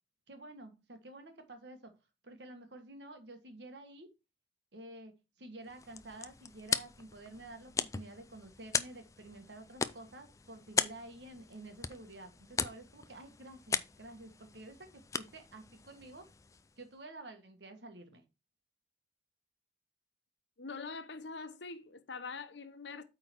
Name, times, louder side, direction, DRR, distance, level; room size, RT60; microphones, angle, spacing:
voice 1, 0.3-1.9 2.2-4.1 4.7-5.1 5.4-16.2 16.8-18.2, right 2 dB, 80° right, 1.5 m, -50 dB
sound 1, 5.6-16.9, left 5 dB, 20° left, 0.3 m, -39 dB
voice 2, 20.6-23.0, left 4 dB, 85° left, 0.9 m, -44 dB
8.6 x 3.9 x 4.4 m
head